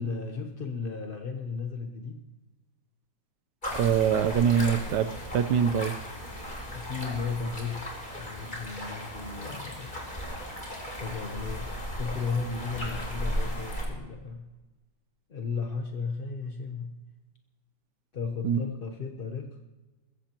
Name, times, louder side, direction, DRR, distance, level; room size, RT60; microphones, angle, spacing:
voice 1, 0.0-2.2 6.7-7.9 8.1-10.0 11.0-14.5 15.3-16.9 18.1-19.6, left 5 dB, 40° left, 3 dB, 0.8 m, -35 dB
sound 1, 3.6-13.9, equal, 25° left, 3.7 m, -36 dB
voice 2, 3.7-5.9 18.4-18.6, right 8 dB, 70° right, 13 dB, 1.3 m, -24 dB
21.0 x 16.0 x 3.0 m, 1.2 s
omnidirectional pair, 2.0 m